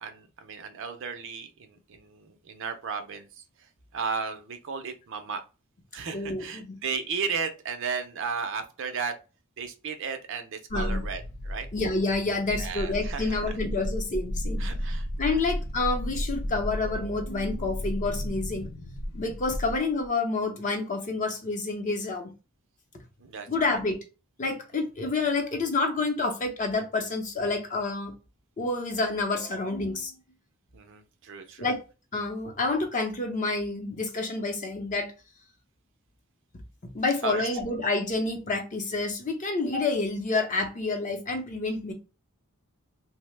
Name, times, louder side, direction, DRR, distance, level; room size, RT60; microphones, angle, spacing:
voice 1, 0.0-3.4 3.9-5.4 5.9-9.1 9.6-11.7 12.6-13.5 14.6-15.1 23.2-23.7 30.7-31.7 37.2-37.5, right 5 dB, 60° right, 0.5 m, -34 dB
voice 2, 6.1-6.8 10.7-11.0 11.7-14.6 15.2-18.7 19.1-22.3 23.5-24.0 24.4-28.1 28.6-30.1 31.6-31.8 32.1-35.1 36.9-41.9, left 3 dB, 35° left, 0.6 m, -28 dB
sound 1, 10.7-20.1, equal, 90° left, 0.6 m, -33 dB
2.8 x 2.0 x 3.2 m
head